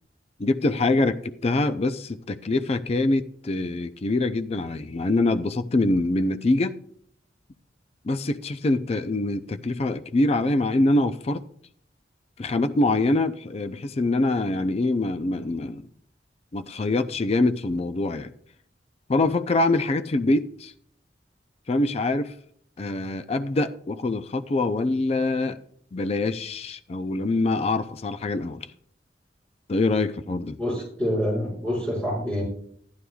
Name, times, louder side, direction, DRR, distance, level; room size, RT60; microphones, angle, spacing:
voice 1, 0.4-6.7 8.0-11.4 12.4-15.9 16.5-18.3 19.1-20.7 21.7-22.3 22.8-25.6 25.9-28.7 29.7-30.6, left 2 dB, 35° left, 0.4 m, -24 dB
voice 2, 30.6-32.4, equal, 5° left, 5.3 m, -26 dB
14.0 x 11.0 x 2.3 m
head